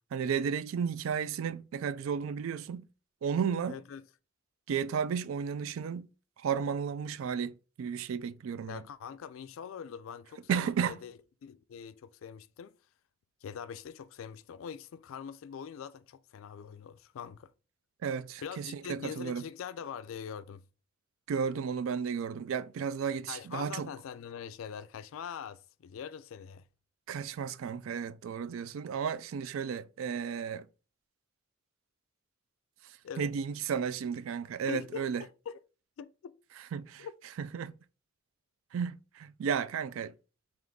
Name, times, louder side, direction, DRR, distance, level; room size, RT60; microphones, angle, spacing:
voice 1, 0.1-2.9 3.2-3.8 4.7-6.1 6.4-8.8 10.5-11.0 18.0-19.4 21.3-23.9 27.1-30.7 33.2-35.2 36.7-37.1 37.4-37.7 38.7-40.1, right 7 dB, 90° right, 0.3 m, -33 dB
voice 2, 3.6-4.0 8.7-12.7 13.4-17.5 18.4-20.6 23.3-26.6 33.0-33.3 34.7-35.6 36.0-36.4 37.0-37.1, left 7 dB, 80° left, 0.3 m, -43 dB
3.5 x 3.0 x 3.7 m
head